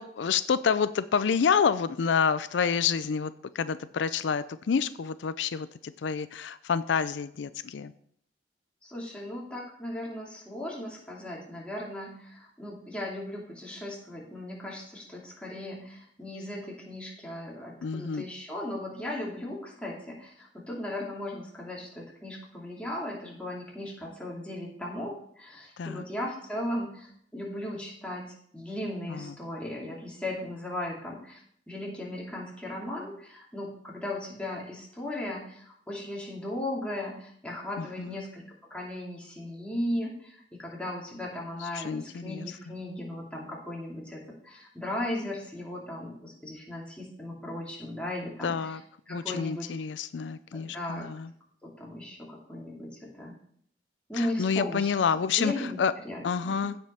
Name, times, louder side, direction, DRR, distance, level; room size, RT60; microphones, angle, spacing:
voice 1, 0.0-7.9 17.8-18.2 25.8-26.0 29.1-29.3 37.8-38.2 41.7-42.4 48.4-48.8 49.1-51.3 54.2-55.9 56.2-56.8, left 6 dB, 85° left, 14 dB, 0.4 m, -28 dB
voice 2, 8.8-28.2 28.5-31.4 31.7-38.4 38.7-48.8 49.1-49.7 50.5-51.1 51.6-53.3 54.1-54.9 55.4-55.8 56.0-56.7, left 1 dB, 5° left, -3 dB, 2.5 m, -37 dB
15.5 x 5.3 x 4.3 m, 0.65 s
head